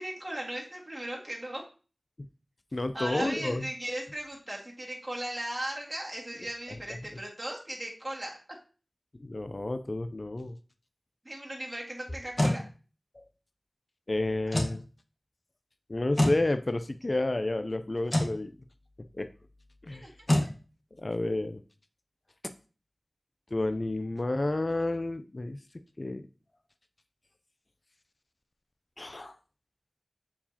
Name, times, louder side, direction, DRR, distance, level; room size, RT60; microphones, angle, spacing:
voice 1, 0.0-1.6 2.9-8.4 11.2-12.6 20.0-20.1, right 1 dB, 30° right, -3 dB, 1.8 m, -37 dB
voice 2, 2.7-3.7 9.2-10.6 13.1-13.2 14.1-14.8 15.9-18.6 19.2-19.3 19.8-20.1 21.0-21.6 23.5-25.6 26.0-26.3 29.0-29.4, left 2 dB, 50° left, 9 dB, 0.4 m, -30 dB
sound 1, 12.1-12.6 14.5-14.8 16.2-16.4 18.1-18.4 20.3-20.5, left 1 dB, 30° left, 1.2 m, -25 dB
7.2 x 4.7 x 2.8 m, 0.36 s
wide cardioid pair, 55°, 0 cm